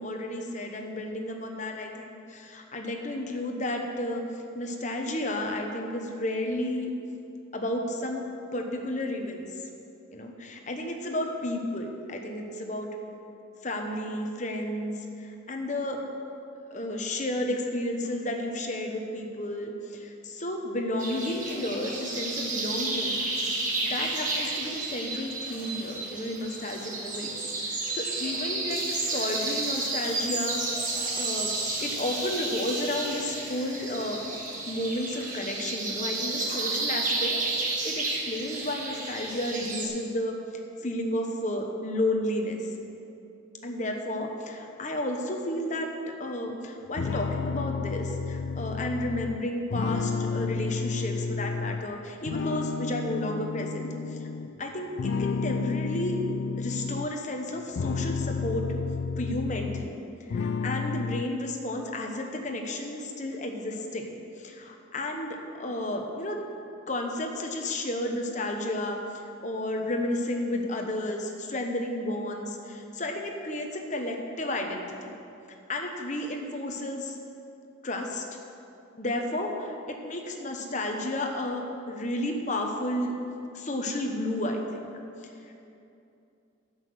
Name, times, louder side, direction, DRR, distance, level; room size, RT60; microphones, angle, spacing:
voice 1, 0.0-6.9 7.5-8.2 8.5-9.6 10.1-12.9 13.6-16.0 16.7-23.5 23.8-30.9 31.1-31.5 31.8-34.2 34.7-40.4 40.8-42.7 43.6-45.9 46.2-54.3 54.6-56.2 56.6-58.7 59.2-60.0 60.3-66.4 66.9-75.1 75.7-77.2 77.8-78.2 79.0-83.1 83.5-84.9 85.2-85.5, left 1 dB, 35° left, 2 dB, 1.1 m, -32 dB
sound 1, 21.0-39.9, right 3 dB, 40° right, 1.5 m, -32 dB
sound 2, 28.7-34.8, left 2 dB, 20° left, 1.6 m, -43 dB
sound 3, 47.0-51.9 52.3-54.5 55.0-57.1 57.6-60.0 60.3-61.2, left 5 dB, 60° left, 0.3 m, -31 dB
10.5 x 6.6 x 7.9 m, 2.7 s
head